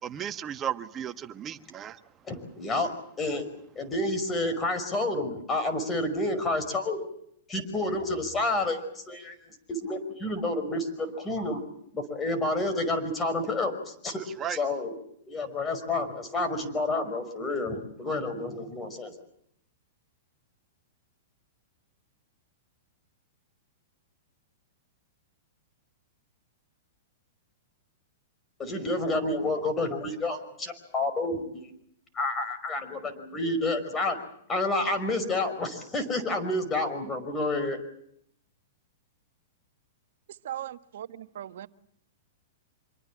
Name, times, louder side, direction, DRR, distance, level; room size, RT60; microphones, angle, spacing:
voice 1, 0.0-2.0 14.4-14.6, right 9 dB, 25° right, 10 dB, 1.3 m, -34 dB
voice 2, 2.2-2.9 3.2-3.5 3.8-7.1 7.5-11.6 11.9-14.2 14.5-15.0 15.3-19.1 28.6-31.7 32.1-34.2 34.5-37.8, left 2 dB, 20° left, 8 dB, 5.4 m, -29 dB
voice 3, 40.3-41.7, right 11 dB, 70° right, 12 dB, 1.2 m, -39 dB
26.0 x 23.0 x 7.4 m, 0.70 s
hypercardioid pair, 120°, 0 cm